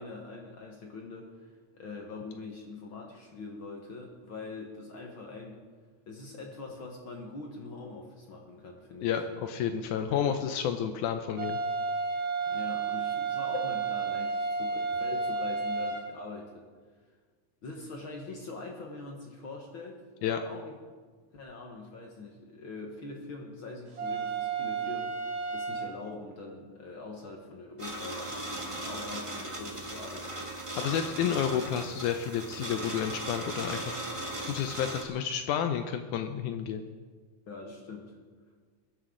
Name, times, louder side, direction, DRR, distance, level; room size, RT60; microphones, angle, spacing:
voice 1, 0.0-5.6 6.1-9.2 10.1-10.4 12.5-16.7 17.6-20.0 20.3-20.8 21.3-28.3 28.7-30.5 31.2-31.3 37.5-38.1, left 3 dB, 50° left, 1 dB, 1.7 m, -43 dB
voice 2, 9.0-11.6 20.2-20.4 30.8-34.0 34.5-36.9, left 8 dB, 80° left, 7 dB, 2.1 m, -30 dB
sound 1, 11.4-16.0 24.0-25.9, right 4 dB, 45° right, 2.4 m, -32 dB
sound 2, 27.8-35.0, right 1 dB, 25° right, 0.6 m, -38 dB
21.5 x 11.0 x 3.8 m, 1.5 s
omnidirectional pair, 3.6 m